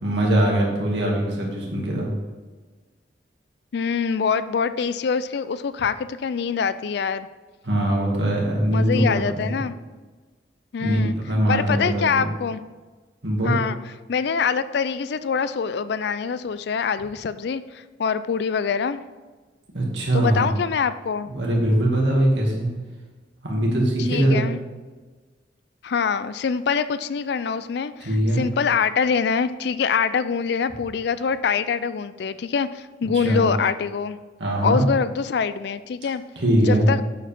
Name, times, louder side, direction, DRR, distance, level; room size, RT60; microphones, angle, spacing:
voice 1, 0.0-2.1 7.6-9.6 10.8-11.0 11.3-12.3 13.2-13.5 19.7-20.5 21.3-22.7 23.4-24.4 28.0-28.4 33.1-33.4 34.4-34.8 36.4-36.9, right 1 dB, 75° right, -2 dB, 2.3 m, -21 dB
voice 2, 3.7-7.3 8.7-9.7 10.7-11.2 11.5-12.6 13.4-13.8 14.1-19.0 20.1-21.3 24.0-24.6 25.8-34.2 34.6-36.2 36.6-37.0, left 6 dB, 65° left, 14 dB, 0.4 m, -24 dB
8.1 x 7.5 x 3.6 m, 1.3 s
head